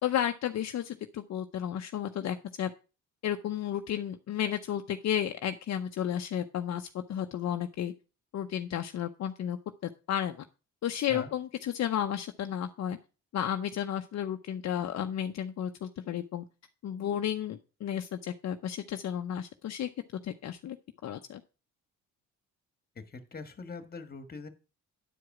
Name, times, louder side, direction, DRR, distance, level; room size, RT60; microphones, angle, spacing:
voice 1, 0.0-2.7 3.2-7.9 8.3-10.4 10.8-13.0 13.3-16.4 16.8-19.9 20.2-20.8 21.0-21.4, left 10 dB, 60° left, 6 dB, 0.7 m, -33 dB
voice 2, 23.0-24.5, left 4 dB, 30° left, 9 dB, 1.5 m, -42 dB
9.9 x 4.8 x 5.9 m, 0.33 s
cardioid pair, 90°, 30 cm